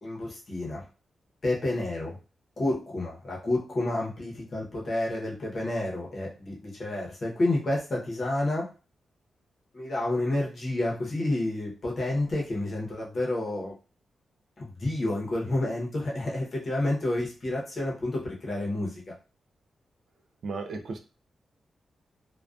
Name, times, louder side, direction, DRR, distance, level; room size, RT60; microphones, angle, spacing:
voice 1, 0.0-0.8 1.4-2.2 2.6-8.7 9.7-13.7 14.6-18.9, left 1 dB, 40° left, -3 dB, 0.8 m, -29 dB
voice 2, 20.4-21.0, right 4 dB, 60° right, 5 dB, 0.3 m, -34 dB
2.4 x 2.2 x 2.3 m, 0.34 s
wide cardioid pair, 150°, 0 cm